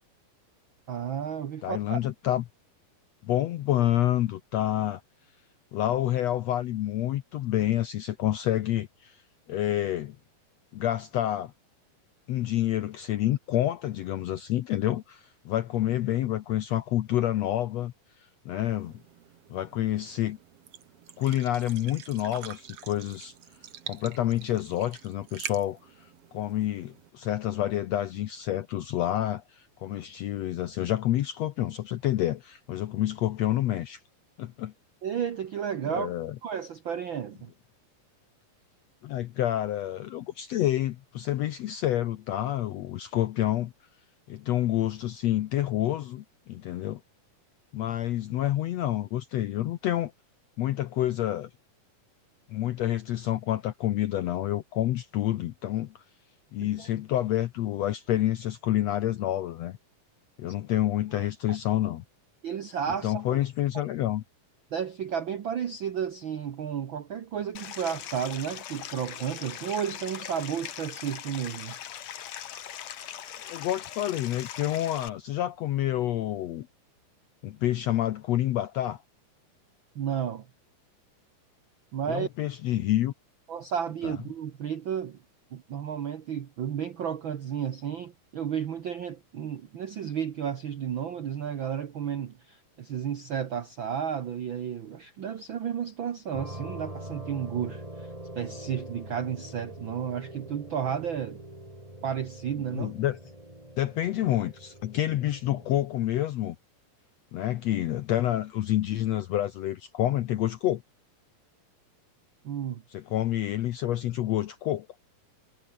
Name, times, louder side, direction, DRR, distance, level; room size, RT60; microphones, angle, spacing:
voice 1, 0.9-2.0 35.0-36.1 36.4-37.5 56.6-56.9 60.7-60.8 61.1-61.3 62.4-63.4 64.7-71.7 79.9-80.5 81.9-82.3 83.5-85.2 85.5-101.4 102.0-102.9 112.4-112.8, right 8 dB, 85° right, 1.0 m, -32 dB
voice 2, 1.6-2.4 3.2-5.0 5.7-9.2 9.5-10.2 10.7-11.5 12.3-18.9 19.5-20.4 21.2-23.3 23.9-34.0 34.4-34.7 35.9-36.3 39.0-43.7 44.3-47.0 47.7-50.1 50.6-51.5 52.5-55.9 56.5-59.8 60.4-62.0 63.0-64.2 73.4-76.7 77.4-79.0 82.1-83.1 84.0-84.2 102.7-103.2 103.8-106.6 107.3-110.8 112.9-114.9, left 13 dB, 80° left, 1.5 m, -28 dB
sound 1, 18.6-27.1, right 10 dB, 55° right, 2.0 m, -46 dB
Stream, 67.6-75.1, left 10 dB, 55° left, 2.5 m, -41 dB
sound 2, 96.3-105.9, right 1 dB, 10° right, 5.7 m, -43 dB
omnidirectional pair, 4.0 m